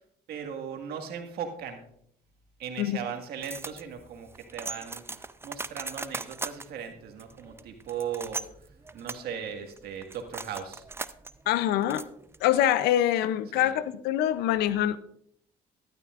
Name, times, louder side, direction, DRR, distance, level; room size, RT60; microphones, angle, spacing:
voice 1, 0.3-1.8 2.6-5.0 5.4-8.4 8.9-10.8 13.5-13.7, right 7 dB, 75° right, 4 dB, 1.8 m, -37 dB
sound 1, 3.4-12.6, right 3 dB, 15° right, 0.5 m, -40 dB
voice 2, 11.5-12.0 12.4-15.0, left 12 dB, 85° left, 15 dB, 0.6 m, -24 dB
13.0 x 12.0 x 2.5 m, 0.68 s
supercardioid pair, 75°, 16 cm